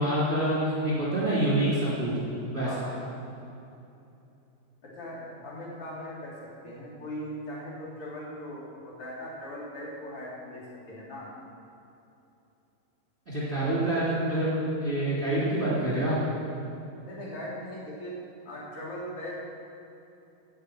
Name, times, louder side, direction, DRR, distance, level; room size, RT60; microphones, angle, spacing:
voice 1, 0.0-2.1 2.5-2.7 13.3-14.5 14.8-16.2, right 1 dB, 15° right, -8 dB, 3.0 m, -26 dB
voice 2, 2.6-3.0 4.8-11.3 17.0-18.1 18.5-19.4, equal, 35° left, -6 dB, 3.6 m, -39 dB
11.5 x 9.4 x 7.8 m, 2.8 s
omnidirectional pair, 5.1 m